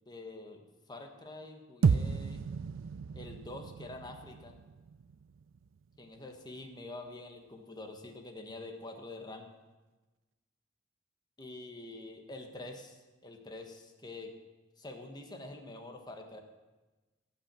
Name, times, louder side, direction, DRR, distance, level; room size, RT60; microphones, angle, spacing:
voice 1, 0.1-2.4 3.1-4.5 6.0-9.5 11.4-14.3 14.8-16.4, left 2 dB, 20° left, 4 dB, 1.3 m, -46 dB
sound 1, 1.8-6.2, right 5 dB, 90° right, 0.4 m, -33 dB
16.5 x 5.8 x 7.5 m, 1.2 s
head